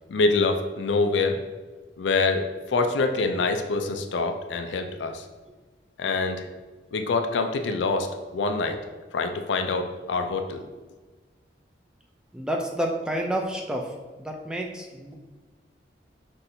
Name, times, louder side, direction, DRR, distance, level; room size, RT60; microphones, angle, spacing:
voice 1, 0.1-1.4 2.0-2.4 2.7-5.2 6.0-6.5 6.9-8.1 8.3-8.8 9.1-10.6, left 3 dB, 80° left, 6 dB, 0.4 m, -25 dB
voice 2, 12.3-15.1, right 1 dB, 5° right, 1 dB, 0.3 m, -30 dB
5.6 x 2.6 x 2.6 m, 1.3 s
head